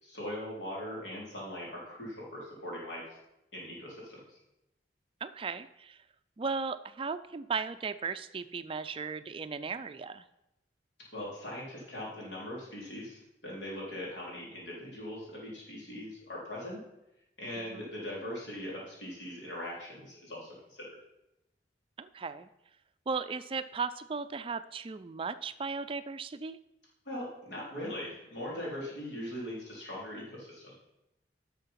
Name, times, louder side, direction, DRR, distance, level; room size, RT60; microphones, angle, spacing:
voice 1, 0.0-3.0 3.5-4.4 11.1-16.8 17.4-21.0 27.1-30.8, left 1 dB, 85° left, -4 dB, 4.0 m, -40 dB
voice 2, 5.2-6.0 6.4-10.2 17.7-17.9 22.0-22.5 23.1-26.6, right 5 dB, 30° right, 12 dB, 0.4 m, -36 dB
10.5 x 6.5 x 5.7 m, 0.90 s
head